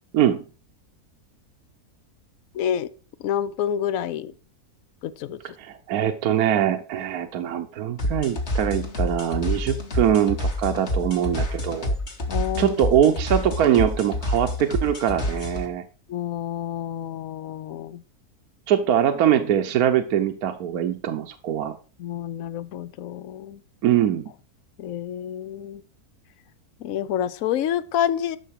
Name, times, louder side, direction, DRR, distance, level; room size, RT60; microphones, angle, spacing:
voice 1, 2.5-2.9 3.2-4.3 5.0-5.4 12.3-12.8 16.1-18.0 22.0-23.6 24.8-25.8 26.8-28.4, left 10 dB, 70° left, 17 dB, 1.0 m, -28 dB
voice 2, 5.6-11.9 12.6-15.8 18.7-21.8 23.8-24.3, right 10 dB, 75° right, 6 dB, 1.2 m, -22 dB
sound 1, 8.0-15.7, left 1 dB, 45° left, 1.9 m, -28 dB
12.0 x 6.2 x 4.7 m, 0.36 s
omnidirectional pair, 1.6 m